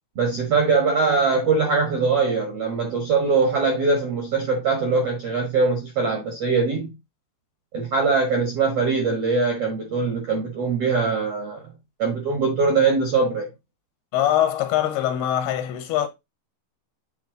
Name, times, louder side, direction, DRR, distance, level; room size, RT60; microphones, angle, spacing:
voice 1, 0.1-6.9 7.7-11.7 12.0-13.5, right 4 dB, 65° right, 1.5 m, -22 dB
voice 2, 14.1-16.1, left 11 dB, 80° left, 2.8 m, -22 dB
8.4 x 3.7 x 3.8 m
omnidirectional pair, 4.7 m